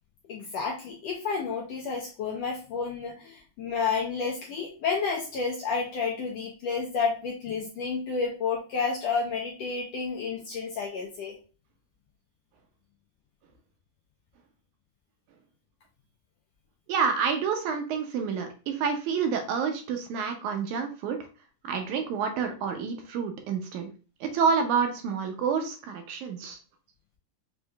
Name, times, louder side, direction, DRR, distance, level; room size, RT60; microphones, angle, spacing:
voice 1, 0.3-11.4, left 5 dB, 75° left, -1 dB, 1.5 m, -30 dB
voice 2, 16.9-21.2 21.6-23.9 24.2-26.6, right 6 dB, 80° right, 5 dB, 1.9 m, -28 dB
6.3 x 2.8 x 2.3 m, 0.36 s
omnidirectional pair, 3.6 m